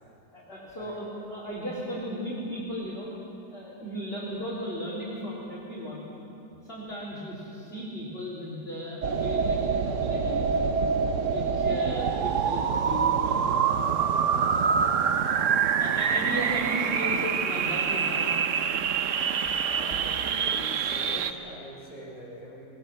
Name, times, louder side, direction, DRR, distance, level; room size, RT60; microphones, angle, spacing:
voice 1, 0.3-3.1 3.5-6.1 6.6-10.5 11.0-13.7 14.1-14.5 15.1-18.3, equal, 35° left, -6 dB, 4.0 m, -36 dB
sound 1, 9.0-21.3, right 6 dB, 55° right, 1.1 m, -26 dB
voice 2, 19.7-22.6, equal, 5° right, -6 dB, 6.5 m, -43 dB
21.0 x 20.5 x 7.5 m, 2.7 s
omnidirectional pair, 1.8 m